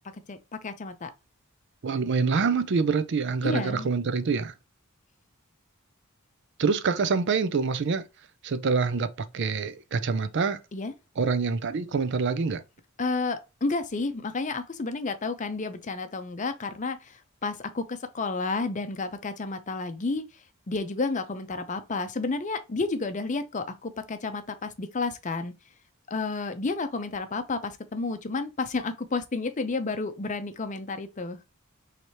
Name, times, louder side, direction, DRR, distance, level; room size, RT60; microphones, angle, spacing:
voice 1, 0.3-1.1 3.4-3.9 10.7-10.9 13.0-20.2 20.7-25.5 26.1-31.4, left 3 dB, 35° left, 0.6 m, -31 dB
voice 2, 1.8-4.5 6.6-8.0 8.4-10.6 11.2-12.6, right 5 dB, 55° right, 0.4 m, -26 dB
4.7 x 3.3 x 2.7 m
head